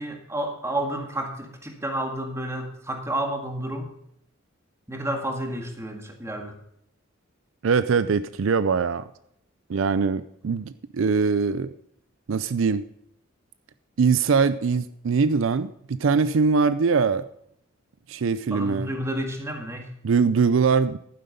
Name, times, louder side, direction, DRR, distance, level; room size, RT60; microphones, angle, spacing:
voice 1, 0.0-3.9 4.9-6.5 18.5-19.9, right 1 dB, 15° right, 4 dB, 1.8 m, -30 dB
voice 2, 7.6-9.1 9.7-11.7 12.3-12.9 14.0-17.3 18.1-18.9 20.0-21.0, right 5 dB, 70° right, 14 dB, 0.4 m, -22 dB
11.5 x 9.6 x 5.2 m, 0.72 s
head